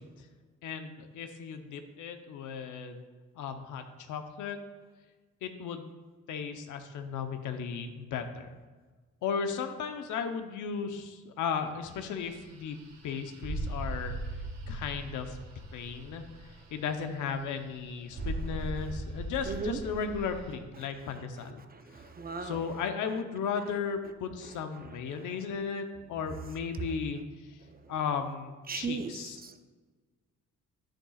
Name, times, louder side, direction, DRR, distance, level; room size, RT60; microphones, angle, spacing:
voice 1, 0.6-3.0 3.4-4.6 5.4-5.8 6.3-8.5 9.2-12.8 13.0-14.1 14.7-15.4 15.7-16.2 16.7-21.6 21.9-22.0 22.4-27.2 27.5-27.6 27.9-29.4, left 6 dB, 80° left, 6 dB, 0.9 m, -35 dB
sound 1, 11.8-20.6, right 1 dB, 65° right, 1.7 m, -39 dB
voice 2, 19.5-19.8 21.9-22.6 28.7-29.1 29.4-29.6, right 5 dB, 30° right, 7 dB, 0.7 m, -36 dB
10.0 x 8.9 x 2.4 m, 1.4 s
cardioid pair, 90°, 30 cm